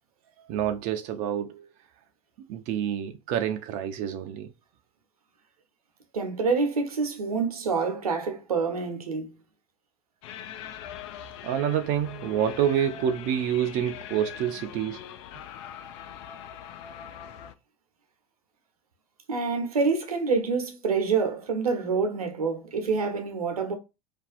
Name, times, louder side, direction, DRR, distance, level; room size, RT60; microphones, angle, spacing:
voice 1, 0.4-1.7 2.4-4.5 11.4-15.0, right 9 dB, 45° right, 0.4 m, -28 dB
voice 2, 6.1-9.3 19.3-23.8, right 4 dB, 85° right, 0.7 m, -27 dB
sound 1, 10.2-17.5, left 10 dB, 55° left, 0.4 m, -42 dB
2.5 x 2.3 x 2.3 m
figure-of-eight pair, 80°, 18 cm